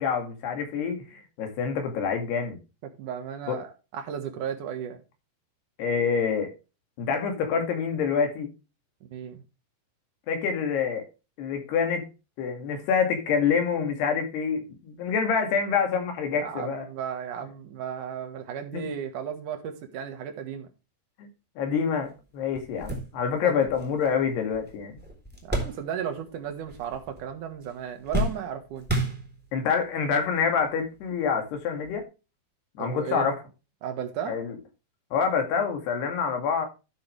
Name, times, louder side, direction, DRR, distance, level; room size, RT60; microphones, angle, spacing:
voice 1, 0.0-2.6 3.5-3.6 5.8-6.5 7.0-8.5 10.3-11.0 11.4-12.1 12.4-16.9 18.7-18.9 21.2-21.3 21.6-25.0 29.5-32.1 32.8-33.4 34.3-34.6 35.1-36.7, left 6 dB, 70° left, 4.2 m, -27 dB
voice 2, 3.0-5.0 9.0-9.4 16.3-20.7 23.4-23.7 25.4-28.9 32.8-33.3 33.8-34.4, right 8 dB, 60° right, 2.4 m, -35 dB
sound 1, 22.0-22.1 22.5-26.3 26.6-27.3 27.6-29.7 30.4-30.5 31.8-32.0, right 1 dB, ahead, 3.0 m, -32 dB
13.0 x 7.0 x 3.3 m
omnidirectional pair, 5.0 m